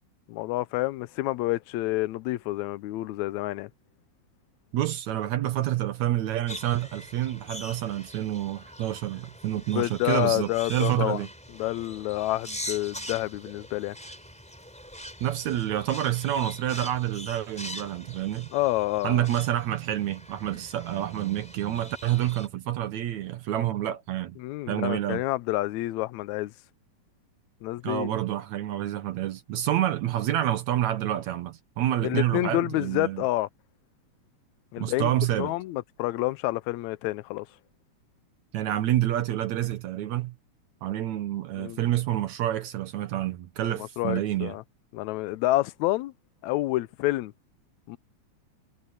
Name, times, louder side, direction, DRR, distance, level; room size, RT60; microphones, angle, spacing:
voice 1, 0.3-3.7 9.8-11.3 11.5-14.0 18.5-19.3 24.4-26.5 27.6-28.2 32.0-33.5 34.7-37.5 41.6-41.9 43.7-44.6 44.9-46.1 46.4-47.3 47.9-48.0, left 17 dB, 75° left, 1.9 m, -28 dB
voice 2, 4.7-11.3 15.2-18.5 19.0-24.4 24.7-25.2 27.8-33.2 34.8-35.5 38.5-40.3 40.8-44.5, right 13 dB, 70° right, 2.3 m, -28 dB
sound 1, 6.5-22.5, equal, ahead, 3.9 m, -43 dB
omnidirectional pair, 3.5 m